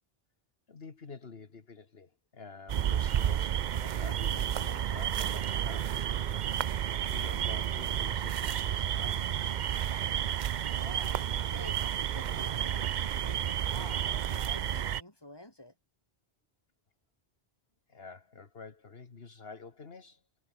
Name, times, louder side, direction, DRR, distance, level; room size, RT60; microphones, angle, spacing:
voice 1, 0.7-6.0 6.5-6.8 7.1-9.4 17.9-20.2, left 4 dB, 65° left, 1.9 m, -48 dB
sound 1, 2.7-15.0, right 10 dB, 55° right, 0.6 m, -31 dB
voice 2, 10.8-15.7, left 1 dB, 20° left, 3.9 m, -49 dB
omnidirectional pair, 1.1 m